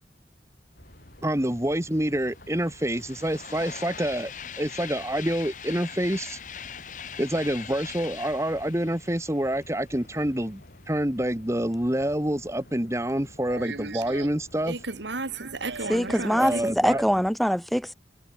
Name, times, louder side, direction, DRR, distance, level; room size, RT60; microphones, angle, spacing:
sound 1, 0.7-17.3, left 1 dB, 60° left, 4.3 m, -51 dB
voice 1, 1.2-6.4 7.2-10.6 10.9-14.8 16.4-17.0, right 1 dB, 15° right, 1.8 m, -27 dB
sound 2, 1.4-1.5 1.7-10.4, left 8 dB, 45° left, 1.8 m, -42 dB
voice 2, 13.5-14.3 14.7-16.6, right 3 dB, 90° right, 1.8 m, -34 dB
voice 3, 15.9-17.9, equal, ahead, 0.4 m, -23 dB
head